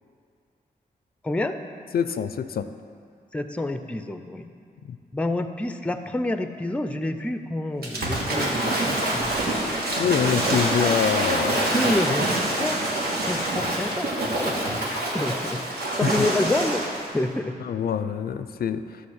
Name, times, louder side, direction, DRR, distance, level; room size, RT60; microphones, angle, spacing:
voice 1, 1.2-1.6 3.3-4.5 5.1-9.4 10.0-10.3 11.7-12.8 13.3-14.1 14.4-14.6 15.1-15.6 16.0-16.8 17.1-17.5, left 2 dB, 10° left, 9 dB, 0.4 m, -28 dB
voice 2, 1.9-2.7 10.0-11.8 16.0-16.3 17.6-19.0, left 7 dB, 70° left, 11 dB, 0.4 m, -25 dB
Waves surf / Splash splatter, 7.8-17.1, right 1 dB, 75° right, 1.6 m, -26 dB
12.0 x 4.1 x 7.2 m, 2.3 s
wide cardioid pair, 115°, 16 cm